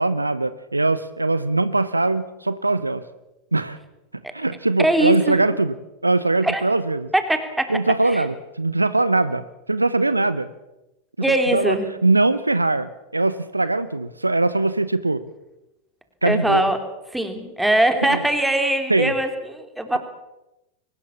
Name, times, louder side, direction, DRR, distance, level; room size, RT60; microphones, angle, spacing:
voice 1, 0.0-3.0 3.5-3.8 4.3-5.8 6.0-7.1 7.7-10.5 11.5-11.8 12.0-15.2 16.2-16.7 18.0-18.2 18.9-19.1, right 2 dB, 85° right, 15 dB, 1.0 m, -21 dB
voice 2, 4.8-5.4 6.4-6.6 7.1-7.7 8.0-8.2 11.2-11.9 16.2-16.8 17.1-20.0, right 1 dB, 5° right, 6 dB, 3.1 m, -21 dB
23.0 x 19.0 x 7.3 m, 0.94 s
figure-of-eight pair, 90°, 0 cm